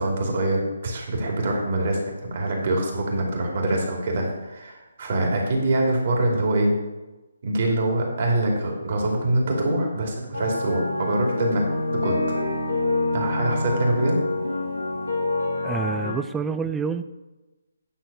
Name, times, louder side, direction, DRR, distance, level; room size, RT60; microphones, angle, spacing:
voice 1, 0.0-6.8 7.4-11.7 12.0-12.2 13.1-14.2, right 1 dB, 50° right, 0 dB, 2.7 m, -24 dB
sound 1, 10.3-16.1, left 2 dB, 90° left, 1.9 m, -26 dB
voice 2, 15.6-17.0, right 5 dB, 10° right, 10 dB, 0.4 m, -27 dB
10.0 x 4.0 x 6.9 m, 1.1 s
figure-of-eight pair, 145°, 0 cm